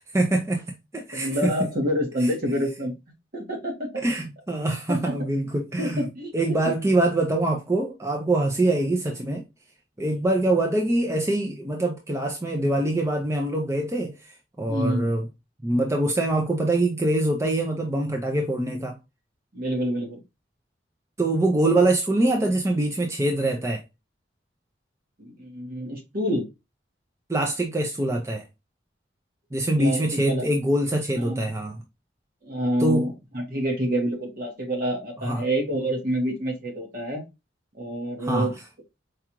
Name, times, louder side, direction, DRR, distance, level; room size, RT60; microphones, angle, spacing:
voice 1, 0.1-0.6 0.9-1.3 4.0-6.1 6.3-9.4 10.0-14.1 14.6-15.2 15.6-18.9 21.2-23.8 27.3-28.4 29.5-31.8 32.8-33.1 35.2-35.4 38.2-38.5, right 1 dB, 15° right, 0.5 m, -24 dB
voice 2, 1.1-2.9 3.3-3.9 4.9-5.2 5.8-6.6 14.7-15.1 19.5-20.2 25.2-26.5 29.8-30.5 31.1-31.5 32.4-37.2 37.8-38.5, equal, 50° right, 1.3 m, -27 dB
4.7 x 2.4 x 2.9 m
head